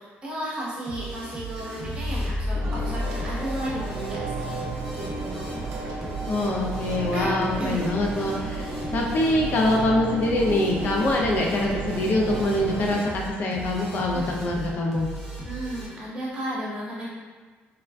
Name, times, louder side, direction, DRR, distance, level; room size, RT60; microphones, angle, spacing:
voice 1, 0.0-4.6 4.9-5.5 7.1-7.3 7.6-7.8 14.1-14.4 15.4-17.0, right 1 dB, 25° right, -7 dB, 0.9 m, -33 dB
sound 1, 0.9-15.9, right 3 dB, 5° left, 0.8 m, -38 dB
sound 2, 1.5-4.4 4.7-4.8, left 2 dB, 65° left, 1.0 m, -31 dB
sound 3, 2.5-12.9, right 2 dB, 80° right, 0.6 m, -33 dB
voice 2, 6.3-15.1, left 1 dB, 50° left, -1 dB, 0.4 m, -24 dB
3.4 x 2.4 x 2.2 m, 1.4 s
cardioid pair, 140°, 4 cm